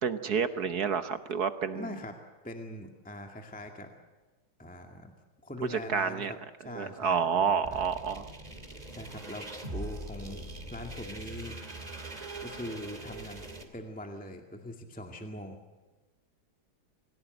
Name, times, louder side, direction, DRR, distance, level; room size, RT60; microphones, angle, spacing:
voice 1, 0.0-1.9 5.7-6.3 6.6-8.3, right 6 dB, 55° right, 10 dB, 1.3 m, -29 dB
voice 2, 1.7-2.1 2.4-3.9 4.6-5.1 5.4-7.9 8.9-11.6 12.4-13.4 13.7-15.6, left 1 dB, 5° left, 3 dB, 1.9 m, -42 dB
sound 1, 7.6-13.6, right 2 dB, 20° right, 2.5 m, -42 dB
27.0 x 17.0 x 7.9 m, 1.2 s
omnidirectional pair, 2.3 m